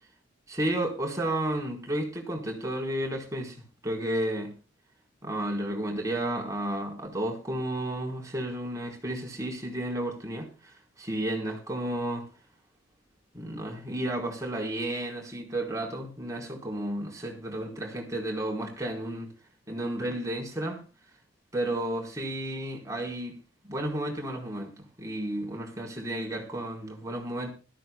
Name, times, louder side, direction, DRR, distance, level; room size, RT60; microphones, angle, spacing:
voice 1, 0.5-4.6 5.2-12.3 13.3-19.3 19.7-20.8 21.5-23.4 23.6-27.5, right 1 dB, 15° right, 4.4 m, -32 dB
20.5 x 14.5 x 2.3 m
head